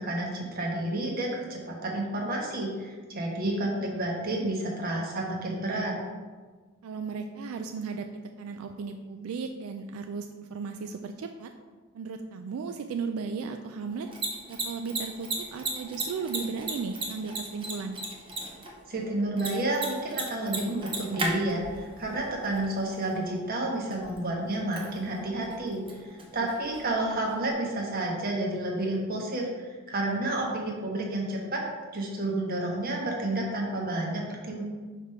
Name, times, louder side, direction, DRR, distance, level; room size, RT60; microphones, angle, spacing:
voice 1, 0.0-5.9 18.9-31.6 31.9-34.6, right 1 dB, 45° right, -1 dB, 1.1 m, -30 dB
voice 2, 6.8-8.1 8.4-11.5 11.9-14.1 14.5-18.0 26.4-26.5, right 5 dB, 85° right, 6 dB, 0.4 m, -35 dB
Mechanisms, 13.9-27.5, right 2 dB, 25° right, 0.8 m, -38 dB
4.8 x 3.6 x 5.6 m, 1.4 s
head